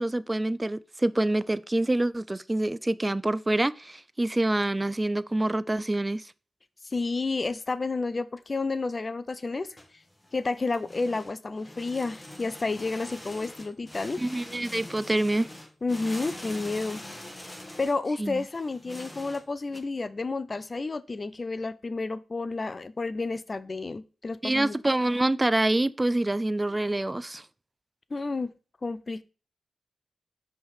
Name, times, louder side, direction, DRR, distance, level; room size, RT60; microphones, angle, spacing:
voice 1, 0.0-6.2 14.2-15.5 18.2-18.4 24.4-27.4, right 1 dB, 20° right, 0.4 m, -26 dB
voice 2, 6.8-9.7 10.3-14.2 15.8-17.0 17.8-24.8 28.1-28.5 28.8-29.2, left 3 dB, 45° left, 0.5 m, -31 dB
sound 1, 9.6-19.8, left 1 dB, 15° left, 1.2 m, -44 dB
5.3 x 3.5 x 5.6 m
cardioid pair, 45°, 0 cm